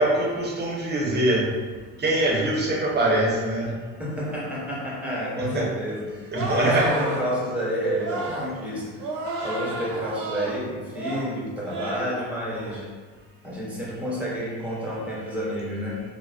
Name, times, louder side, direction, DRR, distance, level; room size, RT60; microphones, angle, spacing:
voice 1, 0.0-1.5 2.0-3.7 5.5-5.7 6.3-6.9 9.2-9.5, right 1 dB, 30° right, -3 dB, 0.8 m, -23 dB
voice 2, 4.0-9.1 9.4-12.9 13.4-16.0, equal, 5° right, -6 dB, 1.0 m, -30 dB
sound 1, 6.3-7.3 8.0-8.5 9.0-10.6 10.9-11.3 11.6-12.1 12.5-12.8, right 2 dB, 70° right, 0.8 m, -32 dB
2.3 x 2.0 x 3.3 m, 1.4 s
supercardioid pair, 80°, 31 cm